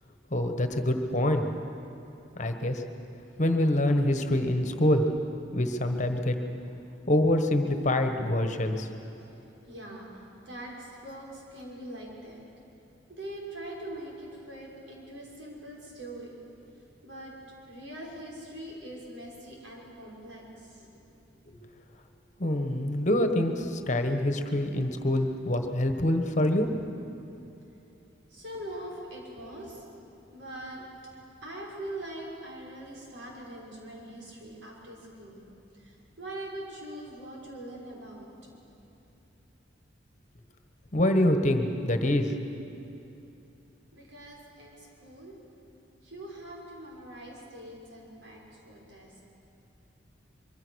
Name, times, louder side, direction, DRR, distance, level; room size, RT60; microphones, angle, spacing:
voice 1, 0.3-1.5 2.4-2.8 3.4-5.1 5.5-6.4 7.1-8.9 21.5-21.6 22.4-26.8 40.9-42.3, left 1 dB, 40° left, 6 dB, 1.4 m, -25 dB
voice 2, 9.6-12.4 13.1-16.4 17.0-17.3 17.7-21.0 28.3-30.9 31.4-35.4 35.7-38.3 43.9-45.4 46.0-49.1, right 1 dB, 85° right, -3 dB, 5.9 m, -43 dB
24.5 x 23.0 x 6.5 m, 2.9 s
head